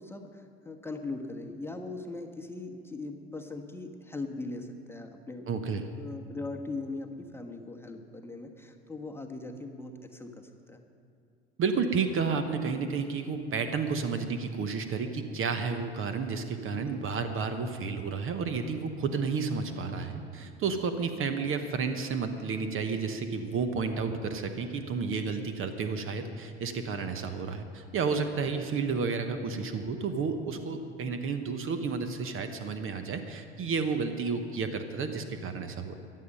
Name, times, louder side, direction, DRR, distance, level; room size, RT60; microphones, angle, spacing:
voice 1, 0.0-5.5 5.7-10.8 16.8-17.0 26.9-27.1, left 3 dB, 5° left, 3 dB, 1.2 m, -40 dB
voice 2, 5.5-5.9 11.6-36.0, right 5 dB, 40° right, 8 dB, 1.1 m, -31 dB
22.5 x 7.6 x 5.4 m, 2.5 s
figure-of-eight pair, 60°, 33 cm